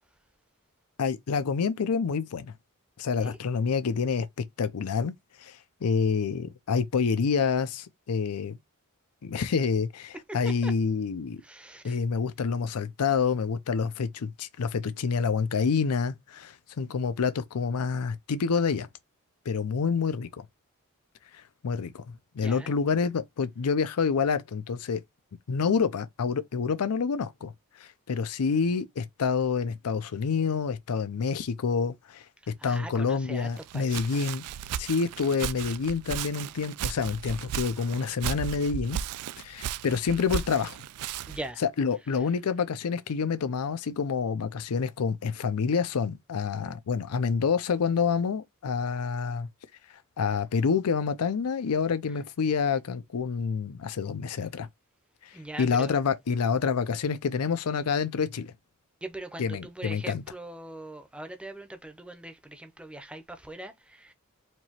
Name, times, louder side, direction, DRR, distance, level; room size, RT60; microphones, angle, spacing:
voice 1, 1.0-2.5 3.0-5.1 5.4-8.6 9.2-11.4 11.8-18.9 19.5-20.5 21.6-22.0 22.3-25.0 25.5-27.5 27.8-32.2 32.6-34.4 34.8-39.0 39.4-40.8 41.6-49.5 50.2-54.7 55.6-58.5 59.4-60.2, left 5 dB, 80° left, 0.5 m, -28 dB
voice 2, 11.4-12.0 22.4-22.7 32.6-34.2 41.3-41.6 52.1-52.2 55.3-55.9 59.0-64.1, right 1 dB, 5° right, 0.6 m, -41 dB
Walk footsteps, 33.6-41.5, right 9 dB, 85° right, 0.3 m, -35 dB
4.5 x 2.8 x 2.8 m
head